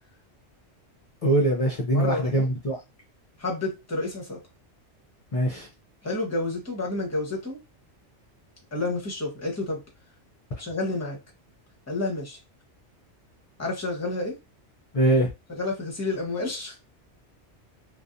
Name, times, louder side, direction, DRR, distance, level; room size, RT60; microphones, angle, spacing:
voice 1, 1.2-2.8 5.3-5.7 14.9-15.3, right 1 dB, 45° left, 0.5 m, -22 dB
voice 2, 1.9-2.5 3.4-4.4 6.0-7.6 8.7-9.8 10.6-11.2 11.9-12.4 13.6-14.4 15.5-16.7, left 2 dB, 15° left, 0.8 m, -30 dB
2.7 x 2.3 x 2.4 m
omnidirectional pair, 1.2 m